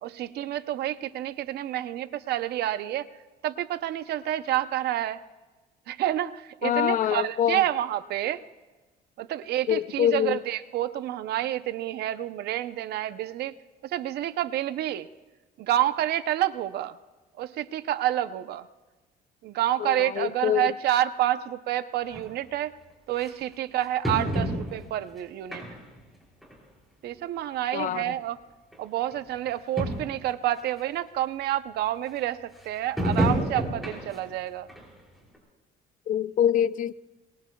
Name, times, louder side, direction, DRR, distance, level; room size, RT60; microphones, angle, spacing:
voice 1, 0.0-3.1 3.4-5.2 5.9-8.4 9.2-13.5 13.8-15.1 15.6-17.0 17.4-18.7 19.4-22.7 23.1-25.6 27.0-28.4 28.8-34.7, right 13 dB, 75° right, 0.8 m, -29 dB
voice 2, 6.6-7.6 9.7-10.4 19.8-20.7 27.7-28.1 36.1-36.9, left 10 dB, 50° left, 0.5 m, -25 dB
sound 1, 22.1-22.2 23.2-23.3 24.0-25.0 25.5-26.0 26.4-26.5 27.5-27.6 27.8-27.9 28.7-28.8 29.1-29.2 29.5-29.6 29.8-30.2 30.8-30.9 33.0-34.3 34.7-34.8 35.3-35.4, equal, ahead, 6.2 m, -29 dB
27.5 x 22.5 x 2.4 m
cardioid pair, 110°, 17 cm